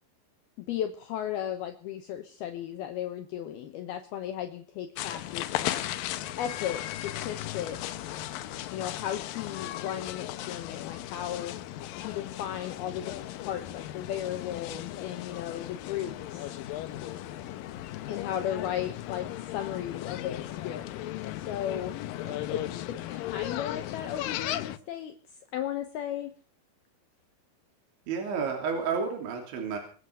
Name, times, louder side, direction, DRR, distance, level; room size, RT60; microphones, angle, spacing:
voice 1, 0.6-5.8 6.4-8.2 8.7-11.6 12.0-16.6 18.1-21.9 22.5-25.2 25.5-26.3, left 10 dB, 75° left, 8 dB, 2.6 m, -35 dB
sound 1, 5.0-24.8, left 13 dB, 90° left, 1.9 m, -36 dB
voice 2, 28.1-29.8, right 5 dB, 75° right, 3 dB, 5.4 m, -31 dB
24.5 x 8.2 x 6.9 m, 0.41 s
omnidirectional pair, 5.4 m